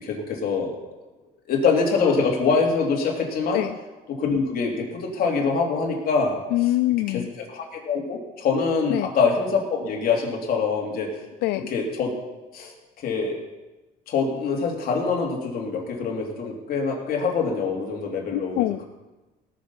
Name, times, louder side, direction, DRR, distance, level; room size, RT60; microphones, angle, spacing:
voice 1, 0.0-0.7 1.5-3.6 4.1-6.4 7.1-7.2 7.5-11.1 11.7-12.1 12.5-12.7 13.0-13.4 14.1-18.8, left 5 dB, 60° left, -1 dB, 3.1 m, -24 dB
voice 2, 6.5-7.3 8.9-9.1 11.4-11.7 18.3-18.8, left 17 dB, 90° left, 12 dB, 0.4 m, -24 dB
18.0 x 6.6 x 5.6 m, 1.1 s
cardioid pair, 110°, 17 cm